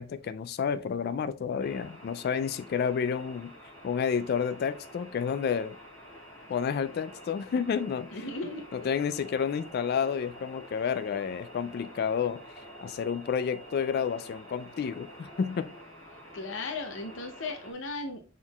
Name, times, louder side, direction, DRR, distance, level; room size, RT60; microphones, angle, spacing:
voice 1, 0.0-3.5 3.8-5.8 6.5-8.1 8.7-12.4 12.8-15.7, left 7 dB, 55° left, 0.3 m, -30 dB
sound 1, 1.6-17.7, equal, 10° left, 2.0 m, -48 dB
voice 2, 8.1-8.9 16.3-18.3, left 3 dB, 70° left, 0.7 m, -36 dB
6.2 x 3.7 x 2.3 m
head